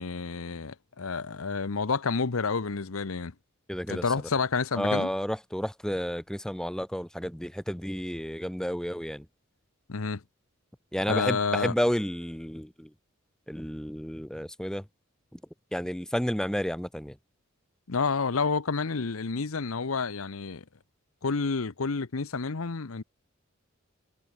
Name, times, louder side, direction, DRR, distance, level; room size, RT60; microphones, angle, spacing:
voice 1, 0.0-3.3 3.9-5.1 9.9-10.2 11.1-11.7 17.9-20.6 21.2-23.0, left 4 dB, 90° left, 0.9 m, -29 dB
voice 2, 3.7-4.0 4.8-9.2 10.9-12.9 13.5-14.8 15.7-17.1, equal, 5° left, 1.3 m, -31 dB
head